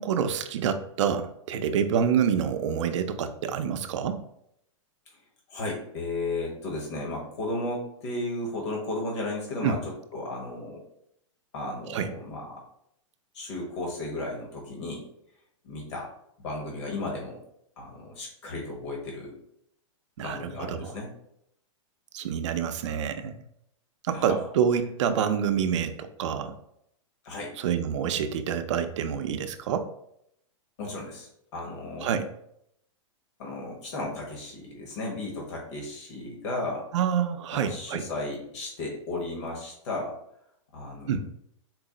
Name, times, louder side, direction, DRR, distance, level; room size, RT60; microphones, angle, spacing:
voice 1, 0.0-4.2 9.6-9.8 11.9-12.1 20.2-20.9 22.1-23.3 24.1-26.5 27.6-29.9 32.0-32.2 36.9-38.0 41.1-41.2, right 8 dB, 65° right, 8 dB, 0.5 m, -27 dB
voice 2, 5.5-10.8 11.5-12.6 13.3-15.1 15.6-16.1 16.4-17.4 17.8-19.4 20.2-21.1 24.1-24.4 27.2-27.6 30.8-32.1 33.4-36.9 37.5-40.2 40.7-41.1, left 2 dB, 60° left, -1 dB, 1.3 m, -34 dB
4.5 x 2.0 x 3.7 m, 0.74 s
hypercardioid pair, 155°, 17 cm